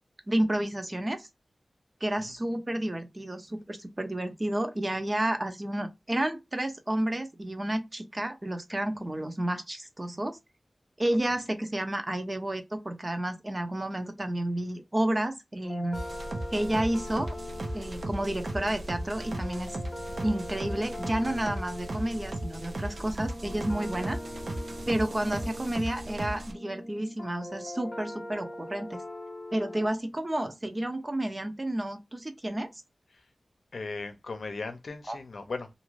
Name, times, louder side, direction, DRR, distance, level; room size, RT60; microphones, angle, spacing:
voice 1, 0.3-1.3 2.0-10.4 11.0-16.0 16.5-17.4 17.7-19.7 20.2-24.2 24.9-29.0 29.5-32.7 35.1-35.2, right 1 dB, 35° right, 0.6 m, -31 dB
sound 1, 15.6-29.9, left 1 dB, 25° left, 0.8 m, -41 dB
sound 2, 15.9-26.5, right 1 dB, 70° right, 0.7 m, -37 dB
voice 2, 33.7-35.7, left 3 dB, 80° left, 0.6 m, -37 dB
2.6 x 2.4 x 3.1 m
cardioid pair, 50°, 0 cm